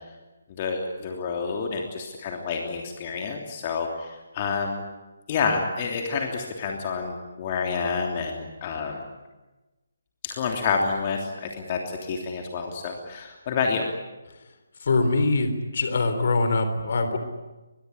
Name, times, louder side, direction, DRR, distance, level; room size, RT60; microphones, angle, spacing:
voice 1, 0.6-4.1 4.3-4.8 5.3-9.1 10.2-13.8, left 5 dB, 30° left, 2 dB, 3.1 m, -28 dB
voice 2, 14.8-17.2, left 3 dB, 50° left, 8 dB, 3.7 m, -23 dB
23.5 x 22.0 x 10.0 m, 1.1 s
figure-of-eight pair, 145°, 0 cm